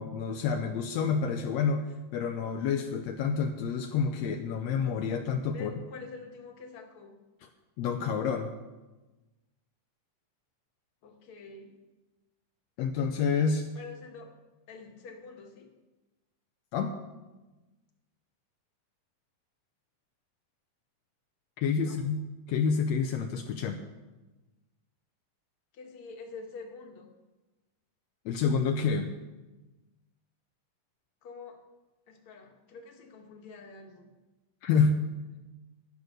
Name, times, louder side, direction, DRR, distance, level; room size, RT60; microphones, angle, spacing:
voice 1, 0.0-5.7 7.8-8.5 12.8-13.7 16.7-16.9 21.6-22.2 22.5-23.8 28.2-29.1 34.6-35.0, left 5 dB, 80° left, 4 dB, 1.6 m, -28 dB
voice 2, 5.5-7.2 11.0-11.7 13.8-14.3 14.7-15.7 21.8-22.0 25.7-27.1 31.2-31.6 32.1-34.1, left 4 dB, 50° left, 2 dB, 1.9 m, -46 dB
11.0 x 11.0 x 6.6 m, 1.1 s
omnidirectional pair, 3.9 m